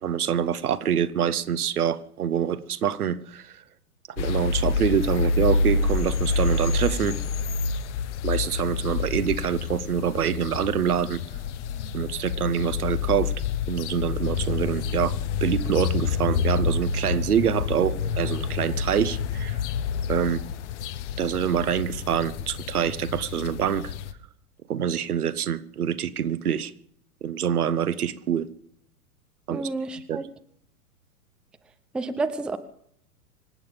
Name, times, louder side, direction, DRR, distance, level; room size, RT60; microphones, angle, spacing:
voice 1, 0.0-3.5 4.2-7.2 8.2-11.2 11.9-13.3 13.7-19.6 20.1-20.4 21.2-23.9 24.7-26.7 27.2-28.5 29.5-29.7 30.1-30.2, right 9 dB, 75° right, 13 dB, 1.3 m, -26 dB
sound 1, 4.2-24.1, left 5 dB, 50° left, 1.3 m, -28 dB
voice 2, 29.5-30.2 31.9-32.6, right 3 dB, ahead, 10 dB, 0.5 m, -29 dB
25.0 x 9.0 x 5.3 m, 0.65 s
hypercardioid pair, 110°, 45 cm